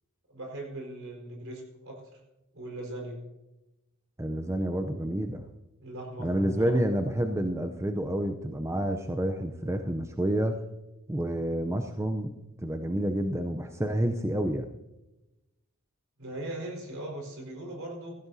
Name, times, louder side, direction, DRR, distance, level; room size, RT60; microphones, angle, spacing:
voice 1, 0.3-2.2 2.5-3.2 5.8-6.8 16.2-18.2, right 1 dB, 65° right, 1 dB, 4.7 m, -39 dB
voice 2, 4.2-5.4 6.2-10.6 11.1-12.3 12.6-14.7, right 1 dB, 15° right, 6 dB, 0.6 m, -29 dB
16.0 x 15.5 x 2.8 m, 0.98 s
head